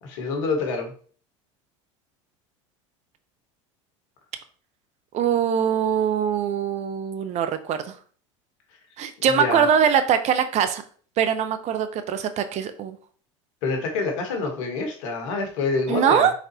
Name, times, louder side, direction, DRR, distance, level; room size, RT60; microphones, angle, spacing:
voice 1, 0.0-0.9 9.2-9.6 13.6-16.3, left 4 dB, 70° left, 3 dB, 1.4 m, -27 dB
voice 2, 5.1-7.9 9.0-10.8 11.2-13.0 15.9-16.3, right 8 dB, 45° right, 10 dB, 0.6 m, -22 dB
4.1 x 3.9 x 2.9 m, 0.44 s
hypercardioid pair, 80°, 16 cm